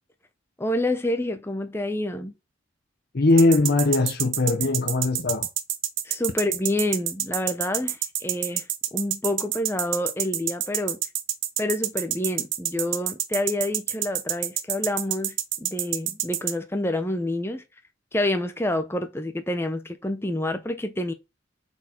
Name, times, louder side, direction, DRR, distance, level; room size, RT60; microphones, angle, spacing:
voice 1, 0.6-2.3 6.0-11.0 11.6-17.6 18.1-21.1, left 1 dB, 10° left, 0.7 m, -28 dB
voice 2, 3.1-5.5, left 2 dB, 55° left, 0.7 m, -20 dB
sound 1, 3.4-16.5, right 12 dB, 80° right, 1.0 m, -27 dB
7.7 x 4.5 x 4.4 m
head